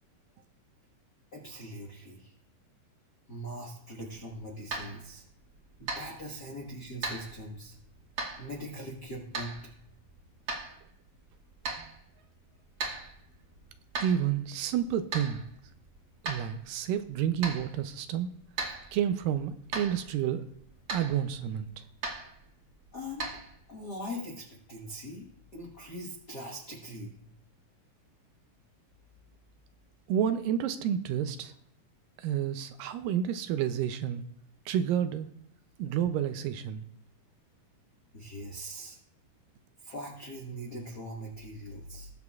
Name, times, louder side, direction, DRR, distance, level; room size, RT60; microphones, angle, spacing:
voice 1, 1.3-2.3 3.3-5.2 5.8-7.8 8.4-9.6 22.9-23.3 23.7-25.3 25.5-27.1 38.1-39.0 39.8-42.1, equal, 60° left, -1 dB, 1.1 m, -41 dB
sound 1, 4.0-23.9, right 3 dB, 40° right, 1.5 m, -41 dB
voice 2, 14.0-15.4 16.2-18.3 18.9-20.4 20.9-21.8 30.1-31.5 32.2-34.2 34.7-35.3 35.8-36.8, right 9 dB, 80° right, 10 dB, 2.1 m, -30 dB
20.5 x 7.0 x 2.4 m, 0.69 s
omnidirectional pair, 4.1 m